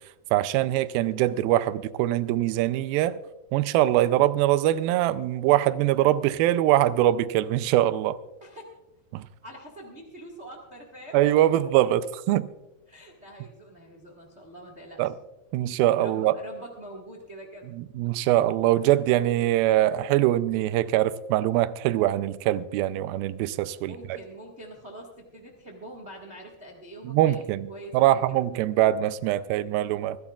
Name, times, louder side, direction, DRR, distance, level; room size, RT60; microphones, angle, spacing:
voice 1, 0.3-3.2 3.5-8.2 9.1-9.3 11.1-12.5 15.0-15.1 15.5-16.4 17.8-23.9 27.1-27.7 27.9-30.2, right 14 dB, 80° right, 2.3 m, -23 dB
voice 2, 9.4-11.2 12.9-15.1 15.7-17.7 23.8-28.4, right 1 dB, 55° right, 0.7 m, -44 dB
24.5 x 13.0 x 2.4 m
omnidirectional pair, 4.4 m